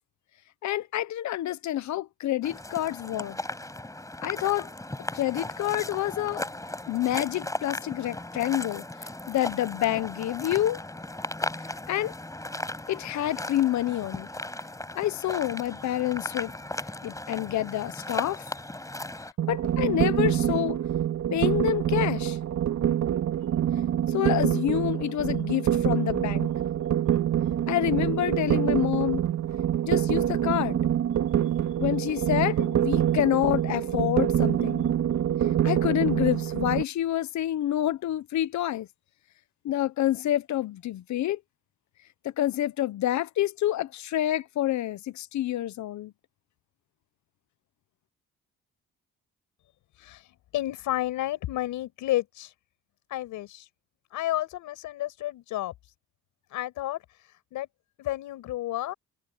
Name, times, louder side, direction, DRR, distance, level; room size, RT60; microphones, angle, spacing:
voice 1, 0.6-3.4 4.2-4.7 5.1-6.4 6.9-10.8 11.9-12.1 12.9-14.3 14.9-16.5 17.0-18.4 19.5-20.8 21.3-22.4 24.1-26.5 27.7-29.2 29.9-30.8 31.8-34.9 35.6-38.9 39.6-41.4 42.4-46.1, left 13 dB, 70° left, 1.0 m, -28 dB
sound 1, 2.4-19.3, left 1 dB, 10° left, 6.5 m, -37 dB
sound 2, 19.4-36.8, right 10 dB, 65° right, 2.3 m, -26 dB
voice 2, 49.9-52.5 53.1-53.7 54.1-55.9 56.5-57.7 58.0-58.9, left 14 dB, 90° left, 5.6 m, -31 dB
cardioid pair, 90°, 30 cm